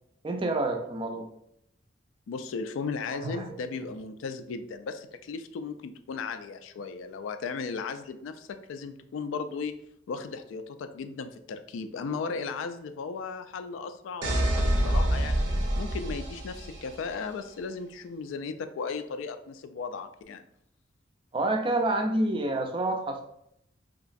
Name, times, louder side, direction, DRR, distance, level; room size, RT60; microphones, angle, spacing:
voice 1, 0.2-1.3 3.1-3.5 21.3-23.2, right 2 dB, 25° right, 4 dB, 0.3 m, -28 dB
voice 2, 2.3-9.8 10.1-15.5 15.7-20.4, left 5 dB, 80° left, 10 dB, 0.3 m, -36 dB
sound 1, 14.2-17.1, right 1 dB, 65° right, 0.6 m, -27 dB
2.9 x 2.5 x 2.4 m, 0.75 s
head